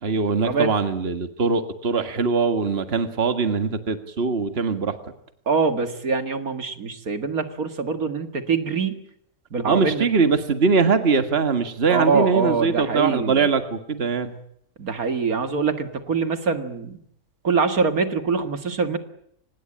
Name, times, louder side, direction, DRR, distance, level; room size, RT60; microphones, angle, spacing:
voice 1, 0.0-5.0 9.7-14.4, right 5 dB, 40° right, 8 dB, 2.0 m, -22 dB
voice 2, 5.5-9.0 9.5-10.1 11.9-13.5 14.8-17.0 17.4-19.0, right 5 dB, 70° right, 8 dB, 2.4 m, -24 dB
25.5 x 20.0 x 8.7 m, 0.72 s
omnidirectional pair, 1.6 m